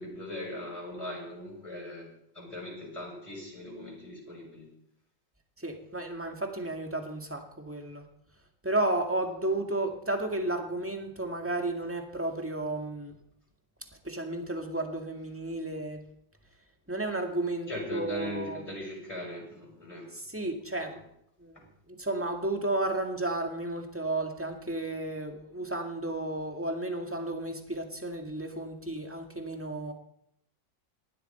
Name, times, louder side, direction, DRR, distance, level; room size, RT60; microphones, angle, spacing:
voice 1, 0.0-2.1 2.3-4.7 17.7-20.1 20.8-20.9, left 1 dB, 15° left, -2 dB, 6.9 m, -39 dB
voice 2, 5.6-8.1 8.6-13.1 14.0-16.0 16.9-18.6 20.1-21.0 21.4-29.9, right 2 dB, 5° right, 3 dB, 1.8 m, -33 dB
18.5 x 13.0 x 4.5 m, 0.73 s
omnidirectional pair, 2.1 m